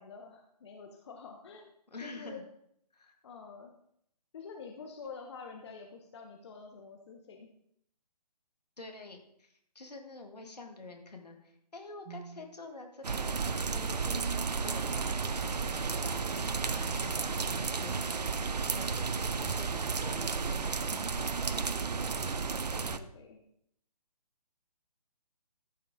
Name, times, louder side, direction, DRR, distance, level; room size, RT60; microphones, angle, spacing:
voice 1, 0.0-1.7 2.0-2.4 3.2-3.7 4.3-7.5 21.8-23.4, left 5 dB, 40° left, 2 dB, 1.0 m, -48 dB
voice 2, 1.9-2.4 2.9-3.1 8.8-18.2 18.6-19.1 19.3-21.7 22.9-23.0, left 3 dB, 70° left, 3 dB, 2.1 m, -48 dB
sound 1, 12.0-12.6 15.5-19.0, right 6 dB, 30° right, 2.1 m, -54 dB
sound 2, 13.0-23.0, right 5 dB, 75° right, 0.6 m, -33 dB
13.5 x 5.7 x 3.8 m, 0.72 s
figure-of-eight pair, 140°, 21 cm